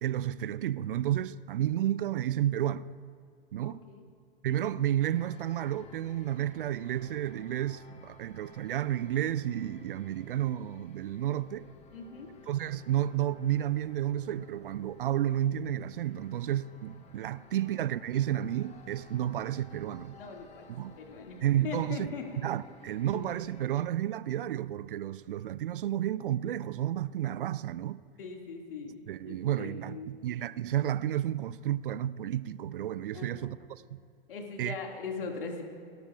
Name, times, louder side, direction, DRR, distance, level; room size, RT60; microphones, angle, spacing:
voice 1, 0.0-2.9 3.5-3.8 4.4-11.7 12.5-20.2 20.7-21.0 21.4-22.1 22.4-28.0 29.1-34.0 34.6-34.8, right 11 dB, 60° right, 0.4 m, -31 dB
voice 2, 3.6-4.1 11.9-12.3 17.6-17.7 20.1-20.7 21.0-22.4 23.1-23.2 28.2-30.1 33.1-33.5 34.3-35.6, left 4 dB, 65° left, 2.1 m, -40 dB
sound 1, 5.1-23.7, left 4 dB, 20° left, 1.3 m, -56 dB
28.5 x 12.5 x 2.4 m
figure-of-eight pair, 95°, 30 cm